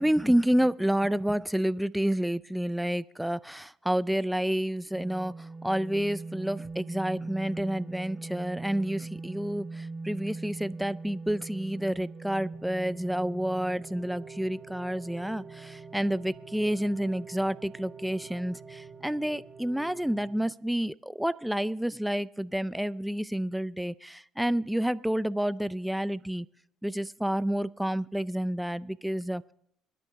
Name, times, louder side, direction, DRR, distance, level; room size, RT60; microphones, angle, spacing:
voice 1, 0.0-26.5 26.8-29.4, equal, 5° right, 18 dB, 0.4 m, -29 dB
sound 1, 4.9-20.4, right 3 dB, 25° right, 1.2 m, -42 dB
22.0 x 10.0 x 3.6 m, 0.70 s
hypercardioid pair, 65°, 0 cm